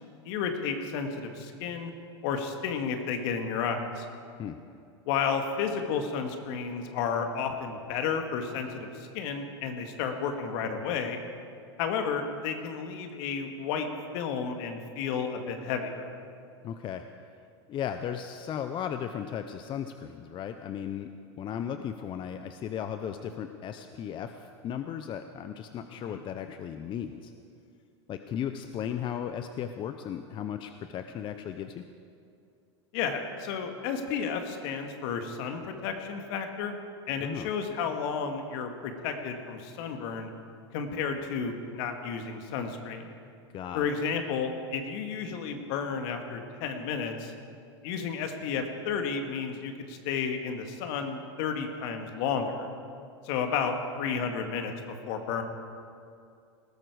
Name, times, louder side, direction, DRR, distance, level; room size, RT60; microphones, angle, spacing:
voice 1, 0.3-1.9 2.2-4.1 5.1-11.2 11.8-13.9 14.1-16.1 25.9-26.2 32.9-36.7 37.1-40.3 40.7-43.1 43.7-47.3 47.8-52.7 53.2-54.7 55.0-55.4, left 6 dB, 60° left, 5 dB, 1.9 m, -32 dB
voice 2, 16.6-17.0 17.7-21.1 21.4-27.3 28.1-31.8 37.2-37.5 43.5-43.9, left 9 dB, 35° left, 8 dB, 0.7 m, -36 dB
19.0 x 13.5 x 4.9 m, 2.4 s
hypercardioid pair, 105°, 15 cm